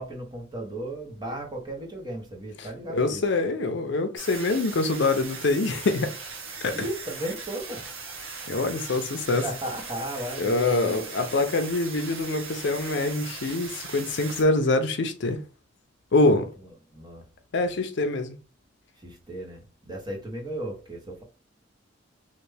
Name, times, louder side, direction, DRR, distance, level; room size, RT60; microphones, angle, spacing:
voice 1, 0.0-3.2 6.7-7.8 9.4-11.1 16.9-17.2 19.0-21.2, right 1 dB, 20° right, 1.0 m, -35 dB
voice 2, 2.9-6.1 6.6-6.8 8.5-9.4 10.4-15.4 16.1-16.5 17.5-18.4, left 2 dB, 65° left, 0.5 m, -25 dB
sound 1, 4.2-14.4, right 4 dB, 90° right, 1.0 m, -39 dB
3.3 x 2.5 x 3.3 m
head